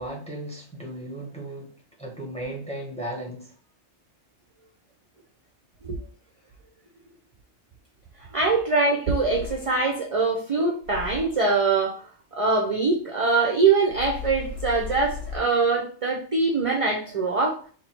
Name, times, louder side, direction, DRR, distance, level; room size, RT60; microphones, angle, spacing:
voice 1, 0.0-1.7 2.0-3.5, right 1 dB, 5° left, 0.7 m, -35 dB
sound 1, 8.2-8.3 9.2-9.9 10.8-11.5 13.9-15.4, left 5 dB, 80° left, 1.2 m, -36 dB
voice 2, 8.3-12.0 12.3-17.6, right 4 dB, 40° right, 0.5 m, -23 dB
3.0 x 2.5 x 4.2 m
omnidirectional pair, 1.2 m